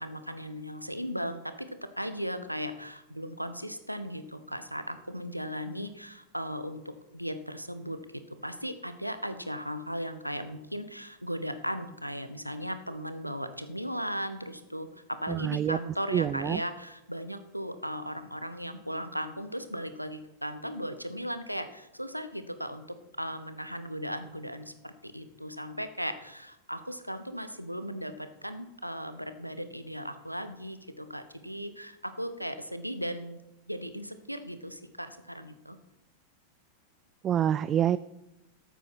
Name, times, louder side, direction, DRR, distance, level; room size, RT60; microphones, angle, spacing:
voice 1, 0.0-22.9 23.2-33.4 33.7-35.8, equal, 90° right, 10 dB, 1.0 m, -37 dB
voice 2, 15.3-15.8 16.1-16.6 37.2-38.0, right 10 dB, 30° right, 17 dB, 0.3 m, -26 dB
13.0 x 8.3 x 6.0 m, 0.94 s
figure-of-eight pair, 90°, 0 cm